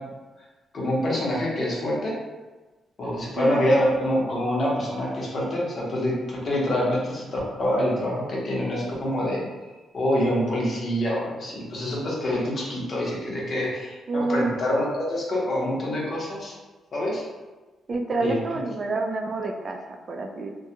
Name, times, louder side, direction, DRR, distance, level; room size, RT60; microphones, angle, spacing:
voice 1, 0.7-2.1 3.0-9.5 9.9-16.5 16.9-17.2 18.2-18.4, left 1 dB, 50° left, -4 dB, 0.8 m, -26 dB
voice 2, 14.1-14.6 17.9-20.5, right 2 dB, 45° right, 3 dB, 0.3 m, -28 dB
2.3 x 2.2 x 2.7 m, 1.2 s
cardioid pair, 85°, 0 cm